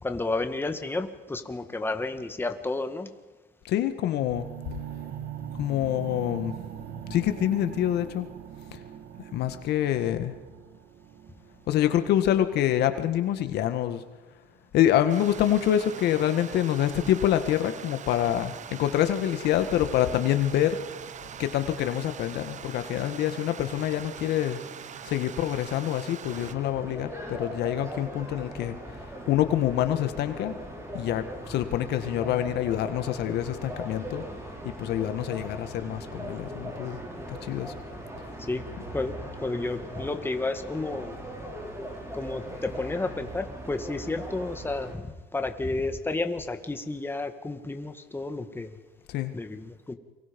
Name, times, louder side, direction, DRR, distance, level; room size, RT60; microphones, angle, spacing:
voice 1, 0.0-3.1 38.4-38.6 38.9-41.2 42.1-48.7 49.3-49.9, left 2 dB, 15° left, 7 dB, 2.0 m, -31 dB
voice 2, 3.6-4.5 5.6-6.6 7.1-8.3 8.7-8.8 9.3-10.4 11.7-14.0 14.7-20.8 21.4-24.6 25.0-30.6 30.9-34.2 34.6-37.0 37.3-37.7 49.1-49.3, left 11 dB, 80° left, 9 dB, 1.8 m, -26 dB
sound 1, 4.2-14.1, right 10 dB, 65° right, 2.5 m, -42 dB
Stream, 15.1-26.6, right 8 dB, 45° right, 1.1 m, -42 dB
sound 2, 26.3-44.9, right 1 dB, 15° right, 6.5 m, -39 dB
29.5 x 24.0 x 5.4 m, 1.3 s
cardioid pair, 110°, 17 cm